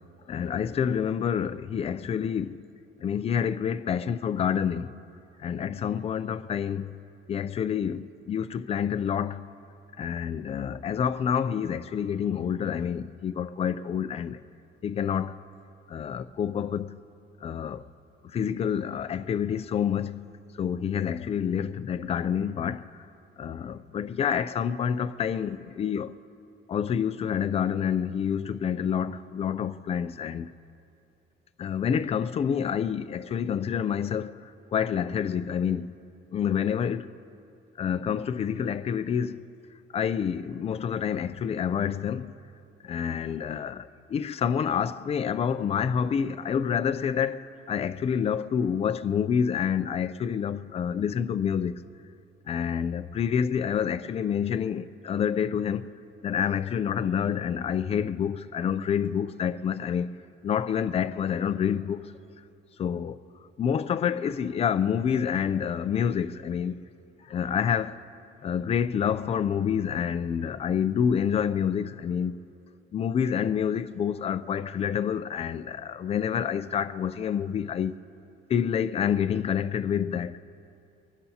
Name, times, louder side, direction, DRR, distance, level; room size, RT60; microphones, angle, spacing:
voice 1, 0.3-2.6 3.0-4.9 5.4-6.9 7.3-9.4 10.0-14.4 14.8-15.4 15.9-16.9 17.4-17.9 18.3-20.3 20.6-22.8 23.4-26.1 26.7-30.5 31.6-34.4 34.7-35.9 36.3-37.1 37.8-39.4 39.9-42.3 42.8-51.8 52.5-55.9 56.2-60.1 60.4-62.1 62.8-63.2 63.6-66.8 67.3-68.0 68.4-72.4 72.9-77.9 78.5-80.4, left 8 dB, 30° left, 0.4 m, -28 dB
24.0 x 17.5 x 2.8 m
cardioid pair, 170°, 19 cm